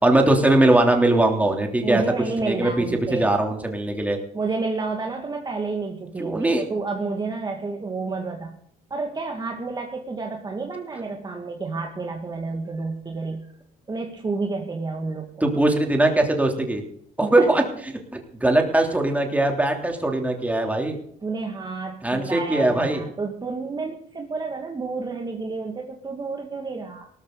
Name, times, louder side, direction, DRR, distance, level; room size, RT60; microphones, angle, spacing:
voice 1, 0.0-2.0 2.4-4.2 6.2-6.6 15.4-16.8 17.2-21.0 22.0-23.0, right 2 dB, 10° right, 2 dB, 3.3 m, -21 dB
voice 2, 1.8-3.3 4.3-8.6 8.9-13.5 13.9-15.5 17.3-17.5 21.2-27.1, right 3 dB, 25° right, 2 dB, 2.1 m, -30 dB
18.0 x 13.5 x 4.0 m, 0.66 s
cardioid pair, 110°, 17 cm